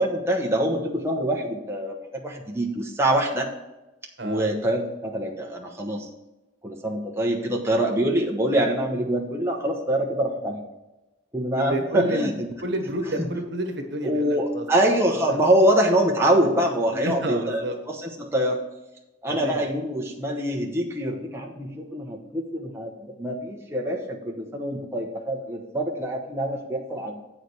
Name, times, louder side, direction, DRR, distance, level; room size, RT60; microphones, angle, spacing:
voice 1, 0.0-3.5 4.2-6.1 6.6-10.6 11.3-12.3 13.2-13.3 14.0-17.6 17.9-18.6 19.2-27.2, right 1 dB, 15° right, -1 dB, 1.0 m, -24 dB
voice 2, 4.2-4.5 11.5-12.3 12.6-14.8 15.3-15.5 16.9-17.8 19.3-19.6, right 1 dB, 65° right, 5 dB, 1.5 m, -30 dB
8.4 x 5.0 x 6.3 m, 1.0 s
head